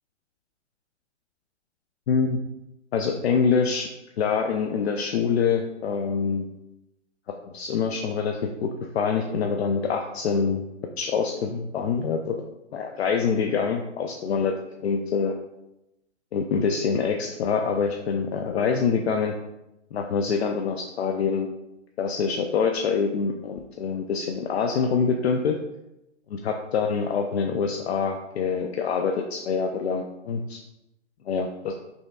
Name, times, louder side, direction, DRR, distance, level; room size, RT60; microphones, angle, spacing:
voice 1, 2.1-2.4 2.9-3.9 4.2-6.5 7.5-10.6 11.0-12.4 12.7-14.5 14.8-15.3 16.3-19.3 19.9-21.5 22.0-25.6 26.3-30.6 31.3-31.7, left 5 dB, 60° left, 3 dB, 0.5 m, -25 dB
5.3 x 3.2 x 2.3 m, 0.90 s
hypercardioid pair, 160°, 36 cm